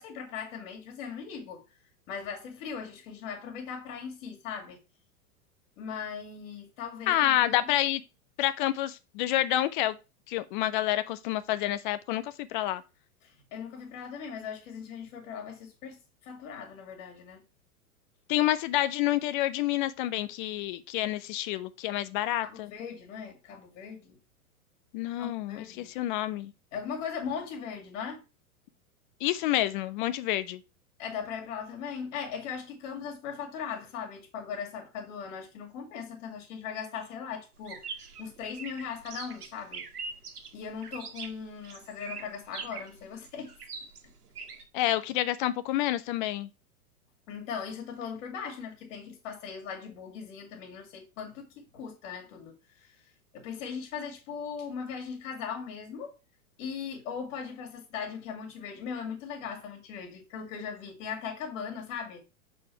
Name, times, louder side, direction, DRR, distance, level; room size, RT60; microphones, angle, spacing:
voice 1, 0.0-1.6 2.1-4.8 5.8-7.1 7.4-7.7 13.2-17.4 22.4-24.2 25.2-25.9 26.7-28.2 31.0-39.8 40.5-43.5 47.3-53.0 53.3-56.1 56.6-62.2, left 6 dB, 55° left, 2.3 m, -39 dB
voice 2, 7.1-8.0 8.4-10.0 10.3-12.8 18.3-22.7 24.9-26.5 29.2-30.6 44.7-46.5, left 14 dB, 35° left, 0.5 m, -28 dB
sound 1, 37.6-44.6, right 5 dB, 80° right, 1.5 m, -42 dB
6.4 x 4.2 x 4.5 m
hypercardioid pair, 105°, 45 cm